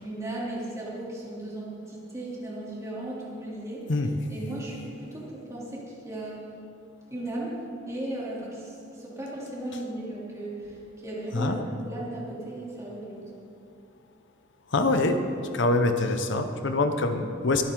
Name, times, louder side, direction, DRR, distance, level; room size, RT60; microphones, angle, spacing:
voice 1, 0.0-3.8 4.3-6.4 7.1-7.6 7.9-11.6 11.8-13.3, right 1 dB, 15° right, -6 dB, 3.1 m, -36 dB
voice 2, 11.3-11.6 14.7-15.2 15.5-17.6, left 2 dB, 65° left, 7 dB, 0.8 m, -24 dB
23.0 x 9.1 x 3.9 m, 2.6 s
head